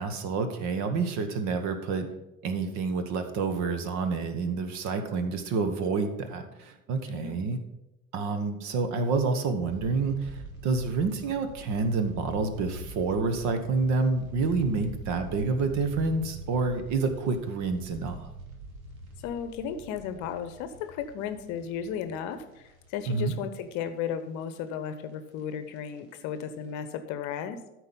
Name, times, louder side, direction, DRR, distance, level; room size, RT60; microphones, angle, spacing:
voice 1, 0.0-2.1 2.4-7.6 8.1-18.3 23.1-23.3, right 4 dB, 40° right, 8 dB, 1.3 m, -28 dB
voice 2, 7.1-7.5 19.2-27.7, left 8 dB, 40° left, 10 dB, 1.0 m, -35 dB
sound 1, 9.7-23.7 24.1-24.2 24.4-24.6 25.5-26.0 26.3-26.4 26.8-26.9, right 1 dB, 70° right, 1.8 m, -44 dB
13.0 x 4.6 x 5.3 m, 0.95 s
figure-of-eight pair, 75°, 43 cm